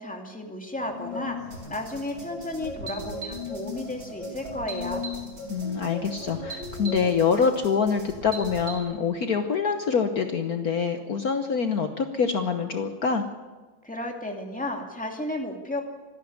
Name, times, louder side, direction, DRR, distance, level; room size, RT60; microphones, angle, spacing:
voice 1, 0.0-1.4 1.7-5.0 13.8-15.8, left 1 dB, 5° left, 2 dB, 2.3 m, -33 dB
Angklung (xylophone) - Bali, 0.8-7.1, left 4 dB, 20° left, 3.1 m, -37 dB
sound 1, 1.5-8.8, right 3 dB, 70° right, 5.8 m, -41 dB
voice 2, 5.5-13.2, left 6 dB, 55° left, 6 dB, 1.5 m, -25 dB
25.5 x 10.5 x 9.6 m, 1.3 s
omnidirectional pair, 2.1 m